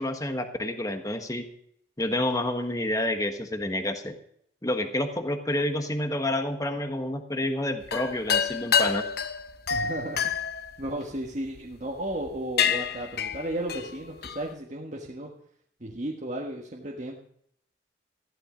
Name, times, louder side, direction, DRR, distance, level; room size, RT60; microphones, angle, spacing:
voice 1, 0.0-1.5 2.0-4.1 4.6-9.0, left 1 dB, 20° left, 6 dB, 1.3 m, -29 dB
sound 1, 7.8-11.6 12.1-12.3 12.6-14.5, left 7 dB, 60° left, 0.8 m, -28 dB
voice 2, 9.7-10.3 10.8-15.3 15.8-17.2, right 1 dB, 40° right, -2 dB, 1.5 m, -34 dB
15.0 x 11.5 x 5.1 m, 0.69 s
head